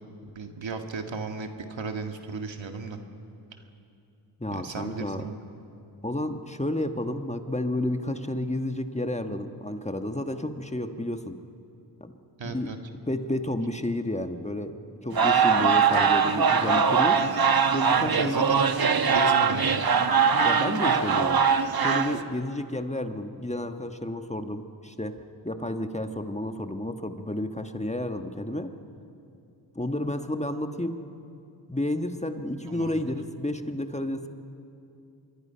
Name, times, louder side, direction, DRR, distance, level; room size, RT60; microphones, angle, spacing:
voice 1, 0.4-3.0 4.5-5.4 12.4-12.8 18.0-19.9 32.7-33.0, right 4 dB, 70° right, 5 dB, 1.9 m, -35 dB
voice 2, 4.4-5.3 6.0-11.4 12.0-12.1 12.4-17.2 17.7-18.7 20.4-21.4 21.8-25.2 25.4-28.7 29.7-31.1 31.7-34.3, left 1 dB, 15° left, 7 dB, 1.3 m, -31 dB
sound 1, 15.1-22.2, right 6 dB, 50° right, 1.2 m, -22 dB
25.0 x 23.0 x 5.7 m, 2.7 s
cardioid pair, 50°, 46 cm